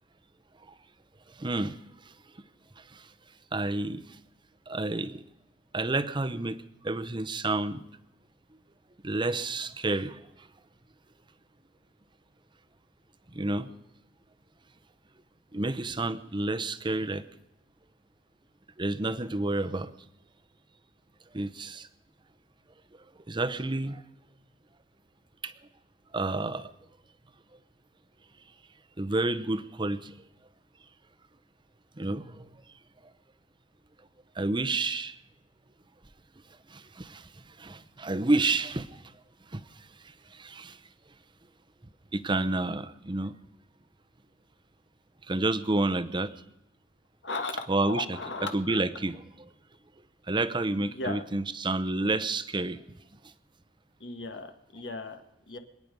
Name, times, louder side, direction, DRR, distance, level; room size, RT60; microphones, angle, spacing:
voice 1, 1.4-1.8 2.9-3.0 3.5-4.0 4.7-5.2 5.7-6.6 6.8-7.8 9.0-10.2 13.3-13.7 15.5-17.2 18.8-19.9 21.3-21.9 23.3-24.0 25.4-25.5 26.1-26.7 29.0-30.1 32.0-32.5 34.4-35.1 36.7-37.2 37.6-38.9 39.5-39.6 40.3-40.8 42.1-43.3 45.3-46.3 47.7-48.0 48.5-49.2 50.3-52.8, right 2 dB, 25° right, 11 dB, 0.8 m, -29 dB
voice 2, 47.2-48.8 50.8-51.2 54.0-55.6, left 3 dB, 70° left, 6 dB, 1.8 m, -37 dB
26.5 x 9.6 x 5.3 m, 0.87 s
head